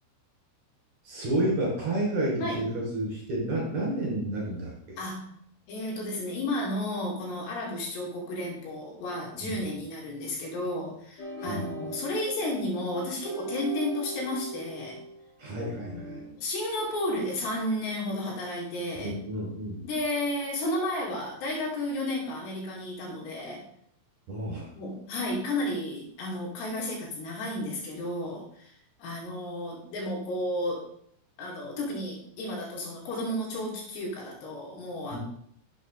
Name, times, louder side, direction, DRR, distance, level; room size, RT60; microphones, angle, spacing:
voice 1, 1.0-5.0 9.4-9.5 11.5-11.6 15.4-16.2 19.0-19.8 24.3-24.7 35.1-35.2, right 1 dB, 40° right, -4 dB, 4.4 m, -30 dB
voice 2, 5.0-5.4 5.7-15.0 15.7-19.2 19.8-23.6 24.8-28.7 29.0-30.9 31.4-35.2, left 1 dB, 70° left, -2 dB, 4.2 m, -32 dB
sound 1, 11.2-16.3, right 1 dB, 45° left, 1.5 m, -40 dB
11.5 x 7.8 x 3.3 m, 0.68 s
omnidirectional pair, 5.3 m